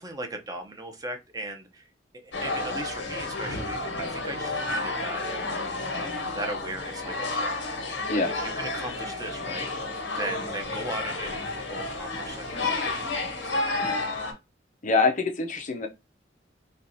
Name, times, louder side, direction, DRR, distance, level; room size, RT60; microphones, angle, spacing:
voice 1, 0.0-1.8 2.2-5.2 5.9-7.6 8.1-9.7 10.1-13.9, right 1 dB, 20° right, 0.7 m, -38 dB
sound 1, 2.3-14.3, left 2 dB, 85° left, 1.3 m, -31 dB
voice 2, 14.8-15.9, left 3 dB, 45° left, 0.7 m, -24 dB
4.5 x 2.4 x 2.6 m
head